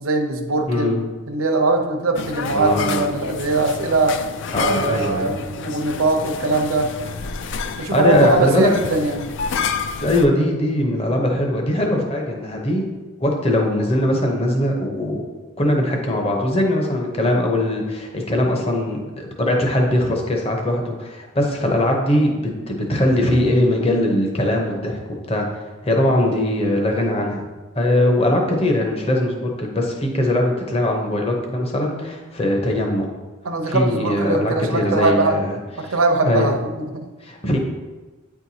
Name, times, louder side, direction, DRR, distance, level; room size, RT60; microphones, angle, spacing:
voice 1, 0.0-1.0 1.3-4.2 4.5-6.9 7.8-9.3 33.4-35.4 35.8-37.1, right 2 dB, 75° right, 4 dB, 0.7 m, -21 dB
voice 2, 0.7-1.0 2.5-3.1 4.5-5.3 7.9-8.7 10.0-12.8 13.2-15.2 15.6-25.0 25.3-25.5 25.8-27.4 27.7-33.0 33.6-36.5 37.2-37.6, left 1 dB, 30° left, 1 dB, 0.8 m, -21 dB
sound 1, 2.2-10.3, left 6 dB, 55° left, 0.3 m, -29 dB
9.0 x 4.5 x 2.8 m, 1.2 s
head